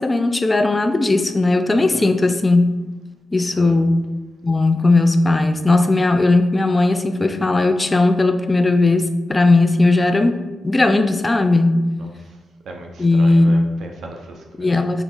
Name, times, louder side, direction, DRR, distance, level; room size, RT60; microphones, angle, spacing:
voice 1, 0.0-2.7 3.3-4.0 4.4-11.9 13.0-13.6 14.6-15.0, left 2 dB, 25° left, 8 dB, 0.3 m, -17 dB
voice 2, 1.8-2.1 3.6-3.7 12.0-12.1 12.7-14.7, right 2 dB, 70° right, 2 dB, 0.6 m, -37 dB
4.5 x 2.0 x 3.7 m, 1.2 s
cardioid pair, 75°, 0 cm